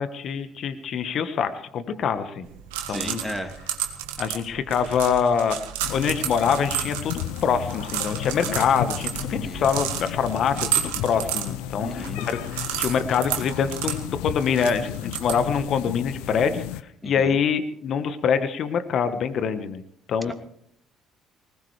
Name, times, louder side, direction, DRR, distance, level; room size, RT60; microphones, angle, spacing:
voice 1, 0.0-2.5 2.9-3.4 4.2-5.6 5.9-7.1 7.4-16.6 17.0-19.8 20.1-20.3, left 7 dB, 60° left, 10 dB, 1.4 m, -25 dB
sound 1, 2.4-15.7, right 11 dB, 85° right, 1.7 m, -32 dB
voice 2, 2.9-3.5 9.3-9.7 11.8-12.2 17.0-17.4 20.3-20.4, equal, 5° left, 6 dB, 2.7 m, -34 dB
sound 2, 5.8-16.8, left 13 dB, 80° left, 0.5 m, -34 dB
20.0 x 19.0 x 3.4 m, 0.65 s
hypercardioid pair, 55°, 0 cm